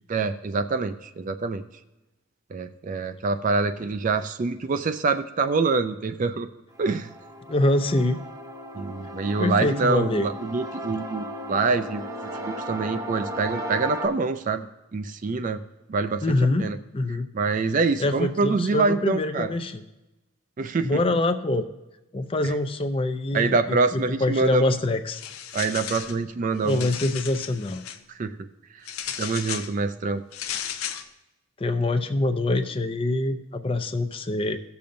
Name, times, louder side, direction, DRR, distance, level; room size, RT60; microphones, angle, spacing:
voice 1, 0.1-1.6 2.5-6.5 6.8-7.1 8.7-12.1 12.4-14.7 14.9-15.6 15.9-16.2 16.6-16.8 17.3-19.5 20.6-21.0 22.4-22.5 23.3-24.6 25.5-26.9 28.1-28.5 29.2-30.2, right 4 dB, 35° right, 9 dB, 0.4 m, -25 dB
sound 1, 6.7-14.1, equal, 15° right, 0.8 m, -35 dB
voice 2, 7.5-8.2 9.4-10.3 16.2-16.6 16.9-17.3 18.0-19.8 20.8-21.7 22.1-25.2 26.6-27.8 31.6-34.6, left 2 dB, 25° left, 9 dB, 0.4 m, -25 dB
sound 2, 25.1-26.2 26.6-28.0 28.9-29.7 30.3-31.1, left 9 dB, 85° left, 0.6 m, -34 dB
17.5 x 6.9 x 2.6 m, 1.0 s
head